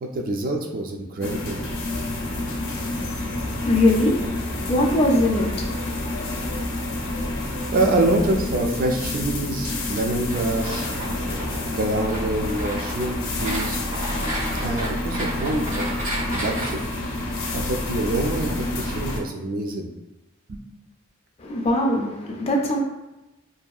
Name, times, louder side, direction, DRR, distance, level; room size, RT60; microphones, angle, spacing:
voice 1, 0.0-1.6 7.7-11.1 11.7-13.8 14.6-15.9 16.3-16.9 17.5-19.9 20.5-20.6, right 2 dB, 45° right, 2 dB, 0.3 m, -26 dB
sound 1, 1.2-19.2, left 1 dB, 75° left, 0.5 m, -28 dB
voice 2, 3.3-6.6 21.4-22.8, left 1 dB, 30° left, 0 dB, 0.4 m, -23 dB
sound 2, 10.3-16.7, right 1 dB, 85° right, 1.1 m, -32 dB
2.7 x 2.3 x 2.3 m, 1.0 s
head